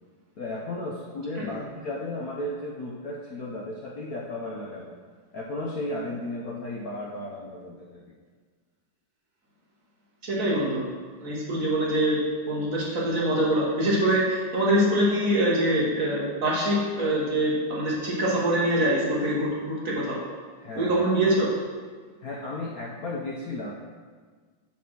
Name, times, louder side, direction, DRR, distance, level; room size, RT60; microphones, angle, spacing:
voice 1, 0.4-5.0 5.3-8.1 20.6-21.1 22.2-23.7, left 1 dB, 60° left, -3 dB, 1.0 m, -34 dB
voice 2, 10.2-10.9 11.2-20.2 20.7-21.5, right 1 dB, 45° right, -5 dB, 1.8 m, -24 dB
7.5 x 4.2 x 6.0 m, 1.5 s
omnidirectional pair, 2.2 m